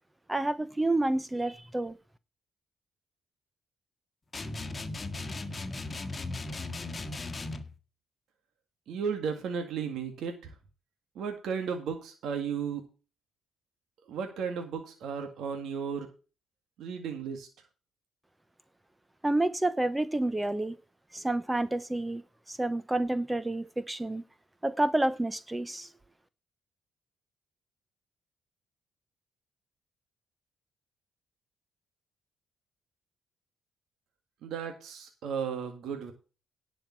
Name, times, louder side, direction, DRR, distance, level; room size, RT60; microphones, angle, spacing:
voice 1, 0.3-2.0 19.2-20.8 21.1-24.2 24.6-25.9, right 2 dB, 15° right, 0.6 m, -29 dB
sound 1, 4.3-7.7, left 2 dB, 25° left, 1.5 m, -37 dB
voice 2, 8.9-10.5 11.2-12.8 14.1-16.1 16.8-17.5 34.4-36.1, right 6 dB, 75° right, 1.9 m, -34 dB
10.5 x 5.4 x 7.3 m
cardioid pair, 90°, 0 cm